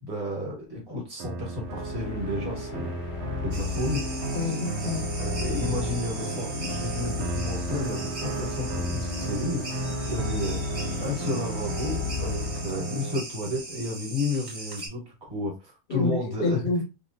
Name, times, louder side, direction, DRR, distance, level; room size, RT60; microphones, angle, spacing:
voice 1, 0.0-2.9 3.4-4.0 5.2-10.6 11.0-15.0 15.3-16.6, left 2 dB, 20° right, 1.2 m, -32 dB
sound 1, 1.2-13.2, right 4 dB, 65° right, 0.8 m, -34 dB
sound 2, 1.5-13.2, left 7 dB, 90° left, 0.4 m, -35 dB
sound 3, 3.5-14.9, right 2 dB, 40° right, 1.0 m, -40 dB
voice 2, 4.3-5.1 15.9-16.8, left 3 dB, 55° left, 1.1 m, -28 dB
3.0 x 2.3 x 2.7 m
omnidirectional pair, 1.4 m